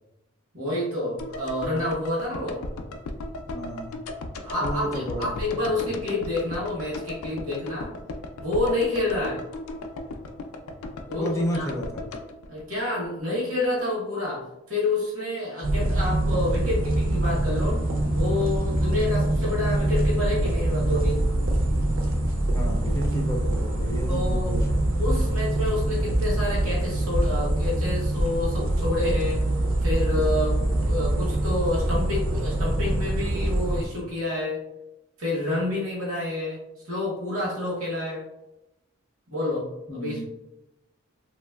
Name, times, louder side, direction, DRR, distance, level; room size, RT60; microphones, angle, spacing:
voice 1, 0.5-2.6 4.4-8.0 8.4-9.5 11.1-11.7 12.5-17.8 18.1-21.3 24.1-24.7 25.0-29.4 29.8-34.6 35.2-36.6 36.8-38.3 39.3-40.2, left 2 dB, 80° right, -5 dB, 0.9 m, -28 dB
sound 1, 1.2-13.4 13.6-13.7, left 2 dB, 85° left, 0.3 m, -36 dB
voice 2, 3.5-4.0 4.6-5.9 11.2-12.0 22.5-24.8 39.9-40.2, equal, 15° left, -1 dB, 0.4 m, -32 dB
sound 2, 15.6-33.9, right 1 dB, 65° right, 0.5 m, -24 dB
2.9 x 2.3 x 2.2 m, 0.92 s
head